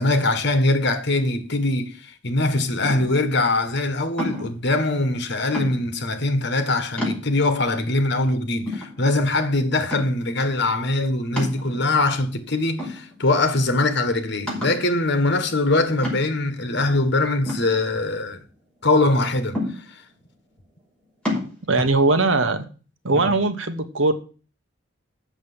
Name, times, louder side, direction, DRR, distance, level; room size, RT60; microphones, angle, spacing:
voice 1, 0.0-18.4 18.8-19.6 19.9-20.0 23.3-23.4, left 2 dB, 60° left, 1.6 m, -22 dB
sound 1, 2.8-3.3 4.2-4.6 5.5-6.0 6.6-6.7 7.0-7.6 8.2-8.3 8.7-9.4 9.9-10.3 11.4-12.1 12.8-13.4 13.8-13.9 14.5-14.9 16.0-16.5 17.5-18.4 19.5-20.1 21.2-21.5, left 1 dB, 5° left, 5.9 m, -30 dB
voice 2, 21.7-22.6 23.0-24.1, right 3 dB, 80° right, 1.3 m, -20 dB
7.9 x 6.7 x 7.9 m
head